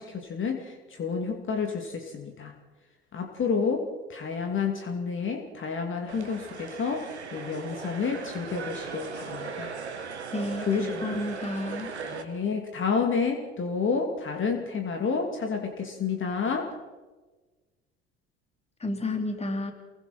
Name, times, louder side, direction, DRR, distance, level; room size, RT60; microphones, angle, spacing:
voice 1, 0.0-2.5 3.1-9.7 10.7-11.0 12.0-16.7, left 5 dB, 35° left, 3 dB, 2.9 m, -30 dB
sound 1, 6.1-12.2, right 5 dB, 80° right, 1.6 m, -38 dB
voice 2, 10.3-11.9 18.8-19.7, left 2 dB, 20° left, 5 dB, 3.3 m, -31 dB
29.5 x 22.5 x 4.4 m, 1.2 s
figure-of-eight pair, 60°, 33 cm